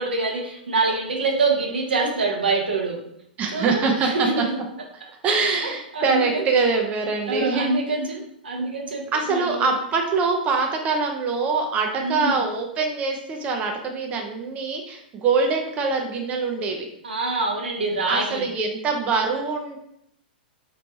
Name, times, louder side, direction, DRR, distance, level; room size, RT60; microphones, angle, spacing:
voice 1, 0.0-3.0 3.5-4.5 5.0-6.4 7.2-9.7 12.0-12.4 17.0-18.5, right 3 dB, 80° right, 1 dB, 0.9 m, -26 dB
voice 2, 3.4-4.1 4.4-4.5 5.2-7.8 9.1-16.9 18.1-19.8, right 4 dB, 25° right, 2 dB, 0.5 m, -24 dB
4.2 x 3.0 x 2.7 m, 0.73 s
hypercardioid pair, 110°, 5 cm